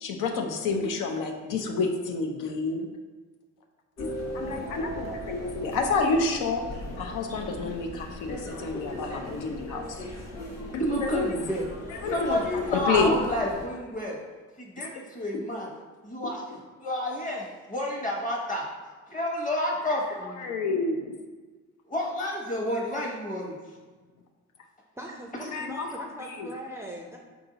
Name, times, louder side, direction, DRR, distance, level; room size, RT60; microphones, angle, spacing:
voice 1, 0.0-2.9 4.0-4.1 4.3-10.0 10.9-11.3 12.0-13.2 14.8-14.9 19.9-20.0 20.4-21.1 25.5-26.5, left 4 dB, 75° left, 3 dB, 0.6 m, -29 dB
sound 1, 4.0-13.6, equal, 55° left, 1.2 m, -38 dB
voice 2, 10.8-14.2 14.6-15.7 16.0-16.4 16.8-18.7 19.1-20.5 21.9-23.6 25.4-25.6, left 1 dB, 25° left, -2 dB, 1.1 m, -30 dB
voice 3, 25.0-27.2, equal, 10° right, -1 dB, 0.4 m, -40 dB
4.6 x 2.6 x 3.9 m, 1.4 s
cardioid pair, 100°, 31 cm